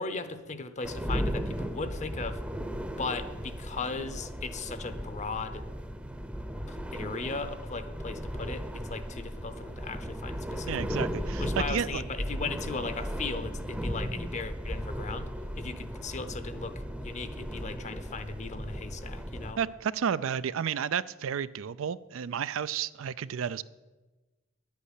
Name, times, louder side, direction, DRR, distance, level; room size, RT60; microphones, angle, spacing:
voice 1, 0.0-2.4 3.0-5.6 6.7-11.1 11.4-19.6, left 4 dB, 35° left, 11 dB, 0.8 m, -37 dB
sound 1, 0.8-19.5, equal, 5° right, 0.7 m, -36 dB
voice 2, 10.7-12.0 19.6-23.6, right 7 dB, 75° right, 16 dB, 0.4 m, -31 dB
10.0 x 8.2 x 8.2 m, 1.2 s
head